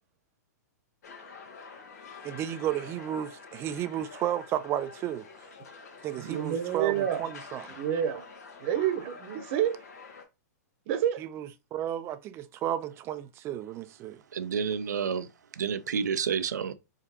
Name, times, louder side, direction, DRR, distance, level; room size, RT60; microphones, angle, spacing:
sound 1, 1.0-10.2, left 4 dB, 70° left, 1.3 m, -47 dB
voice 1, 2.2-5.3 6.0-8.0 11.2-14.2, right 11 dB, 30° right, 0.4 m, -33 dB
voice 2, 6.2-7.2 7.8-8.2 8.6-9.8 10.9-11.2, right 10 dB, 45° right, 0.9 m, -28 dB
voice 3, 14.3-16.7, right 6 dB, 80° right, 0.5 m, -30 dB
4.8 x 2.9 x 2.8 m
hypercardioid pair, 120°, 9 cm